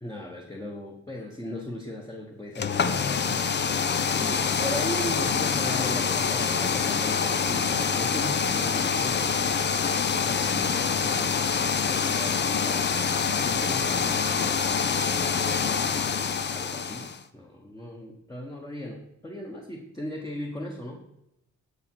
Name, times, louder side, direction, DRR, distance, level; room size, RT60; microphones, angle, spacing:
voice 1, 0.0-3.5 4.2-9.3 10.2-11.4 11.6-15.7 16.5-21.0, left 1 dB, 10° left, 0 dB, 1.4 m, -38 dB
sound 1, 2.5-17.2, left 6 dB, 35° left, 0.7 m, -26 dB
13.5 x 5.2 x 4.7 m, 0.82 s
cardioid pair, 90°, 30 cm